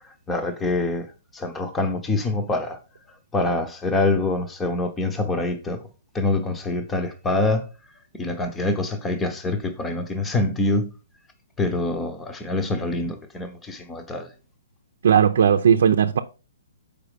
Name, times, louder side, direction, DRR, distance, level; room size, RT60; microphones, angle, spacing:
voice 1, 0.3-1.1 1.3-2.8 3.3-5.8 6.1-7.7 8.1-10.9 11.6-14.3, left 2 dB, 10° left, 0.9 m, -25 dB
voice 2, 15.0-16.2, right 8 dB, 65° right, 0.7 m, -17 dB
6.9 x 5.0 x 5.1 m
hypercardioid pair, 160°, 0 cm